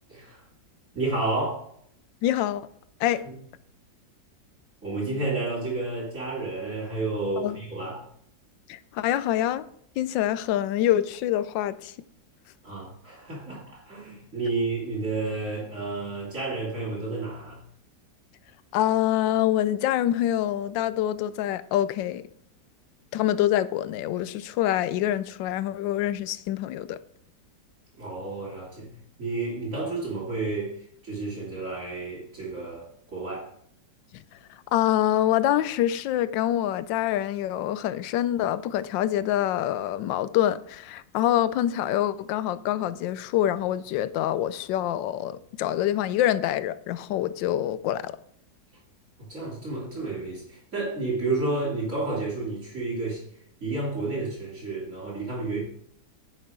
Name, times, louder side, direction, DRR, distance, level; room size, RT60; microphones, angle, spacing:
voice 1, 0.1-0.4 0.9-1.6 3.2-3.3 4.8-8.0 12.6-17.6 28.0-28.9 29.2-33.5 49.2-53.2 53.6-55.6, right 3 dB, 40° right, 3.3 m, -31 dB
voice 2, 2.2-2.7 3.0-3.3 7.4-7.6 8.7-9.6 10.0-11.9 18.7-22.2 23.1-27.0 34.1-34.2 34.5-48.1, left 12 dB, 90° left, 1.3 m, -25 dB
9.9 x 6.7 x 3.7 m
omnidirectional pair, 1.9 m